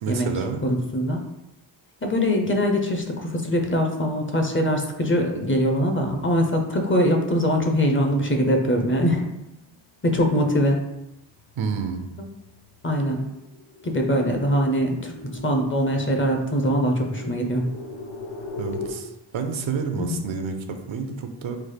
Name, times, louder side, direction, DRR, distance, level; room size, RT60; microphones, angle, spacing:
voice 1, 0.0-0.6 11.6-12.1 18.6-19.1 19.3-21.6, right 5 dB, 80° right, 6 dB, 0.5 m, -29 dB
voice 2, 0.6-1.3 2.0-9.2 10.0-10.8 12.2-12.3 12.8-13.2 13.8-17.7 20.0-20.2, equal, 25° left, 3 dB, 0.5 m, -22 dB
sound 1, 9.6-9.7 10.0-18.9, left 3 dB, 70° left, 0.7 m, -40 dB
3.3 x 2.0 x 3.3 m, 0.90 s
cardioid pair, 45°, 46 cm